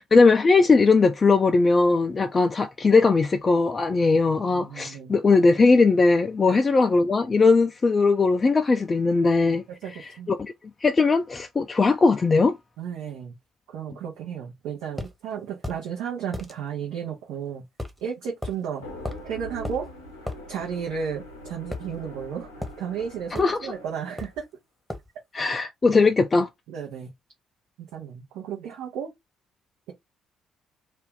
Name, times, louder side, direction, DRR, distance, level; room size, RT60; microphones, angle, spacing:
voice 1, 0.1-9.6 10.3-10.5 10.8-12.6 23.4-23.6 25.3-26.5, left 4 dB, 30° left, 0.4 m, -19 dB
voice 2, 4.5-5.1 6.4-6.6 9.8-10.3 12.8-13.3 13.7-17.6 18.0-18.8 19.2-19.9 20.5-24.4 25.5-25.6 26.7-27.1 27.8-29.1, right 7 dB, 65° right, 0.8 m, -33 dB
sound 1, 15.0-15.1 15.6-15.8 16.3-16.5 17.8-18.0 18.4-18.6 19.0-19.3 19.6-19.8 20.3-20.4 21.7-22.3 22.6-22.8 23.3-23.6 24.2-24.4 24.9-25.1, left 2 dB, ahead, 1.0 m, -35 dB
sound 2, 18.7-24.4, equal, 85° left, 0.9 m, -42 dB
2.6 x 2.4 x 3.6 m
figure-of-eight pair, 45°, 0 cm